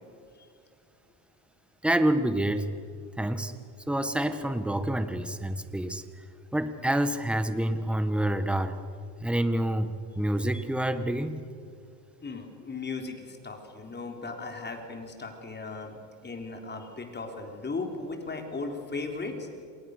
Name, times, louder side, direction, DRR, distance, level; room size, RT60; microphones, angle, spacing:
voice 1, 1.8-2.7 3.2-3.5 3.9-6.2 6.5-8.8 9.2-11.4, right 1 dB, ahead, 9 dB, 1.6 m, -27 dB
voice 2, 12.2-19.5, left 3 dB, 25° left, 3 dB, 3.9 m, -37 dB
29.5 x 27.0 x 6.7 m, 2.2 s
cardioid pair, 125°, 43 cm